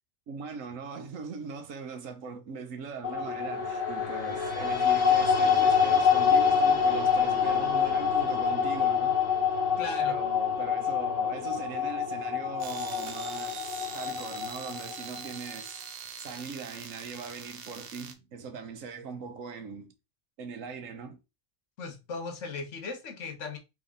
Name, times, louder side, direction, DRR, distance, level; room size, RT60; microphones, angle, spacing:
voice 1, 0.3-9.2 10.0-15.9 16.2-19.9 20.4-21.2, right 5 dB, 85° right, 1.2 m, -41 dB
sound 1, 3.0-15.3, left 6 dB, 45° left, 1.1 m, -26 dB
voice 2, 9.8-10.2 21.8-23.6, left 4 dB, 70° left, 1.3 m, -37 dB
sound 2, 12.6-18.1, right 6 dB, 55° right, 0.8 m, -43 dB
3.6 x 3.6 x 3.8 m
omnidirectional pair, 1.3 m